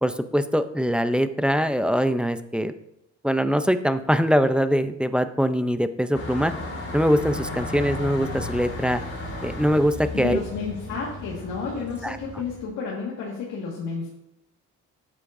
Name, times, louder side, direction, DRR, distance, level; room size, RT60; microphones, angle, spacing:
voice 1, 0.0-2.7 3.2-6.5 6.9-9.0 9.4-10.4 12.0-12.2, equal, 5° right, 10 dB, 0.6 m, -22 dB
sound 1, 6.1-12.6, left 2 dB, 50° left, 2.9 m, -34 dB
voice 2, 10.1-14.1, left 4 dB, 85° left, -4 dB, 1.9 m, -31 dB
12.0 x 8.5 x 2.7 m, 0.81 s
cardioid pair, 90°, 30 cm